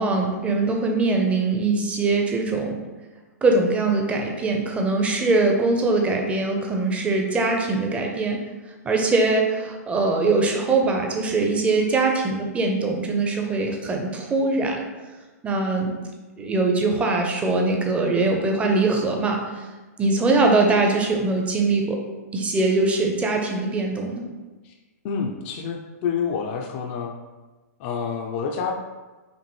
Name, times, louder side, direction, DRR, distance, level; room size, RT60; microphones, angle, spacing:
voice 1, 0.0-2.8 3.4-8.4 8.8-14.9 15.4-15.9 16.4-19.4 20.0-22.0 22.3-24.2, right 3 dB, 15° right, 2 dB, 0.6 m, -22 dB
voice 2, 25.0-27.1 27.8-28.7, left 6 dB, 45° left, 2 dB, 0.5 m, -28 dB
5.2 x 2.5 x 3.1 m, 1.2 s
hypercardioid pair, 130°, 9 cm